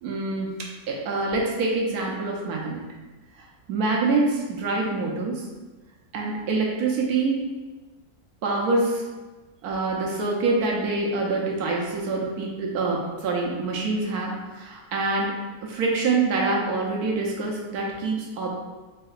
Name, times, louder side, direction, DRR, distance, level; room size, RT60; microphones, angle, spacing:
voice 1, 0.0-2.8 3.4-5.5 6.1-7.4 8.4-9.0 9.6-15.4 15.6-18.5, right 3 dB, 80° right, -1 dB, 1.2 m, -26 dB
4.3 x 2.8 x 2.4 m, 1.2 s
omnidirectional pair, 1.6 m